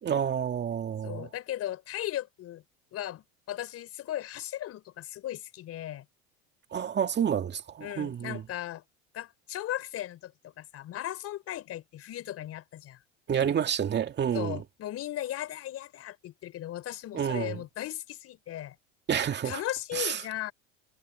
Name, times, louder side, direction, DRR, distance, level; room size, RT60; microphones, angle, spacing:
voice 1, 0.0-1.3 6.7-8.4 13.3-14.6 17.1-17.6 19.1-19.6 19.9-20.2, right 8 dB, 35° right, 2.2 m, -29 dB
voice 2, 1.0-2.6 2.9-6.1 7.8-8.8 9.1-13.0 14.3-18.8 19.4-20.5, left 13 dB, 50° left, 4.6 m, -37 dB
supercardioid pair, 95°, 32 cm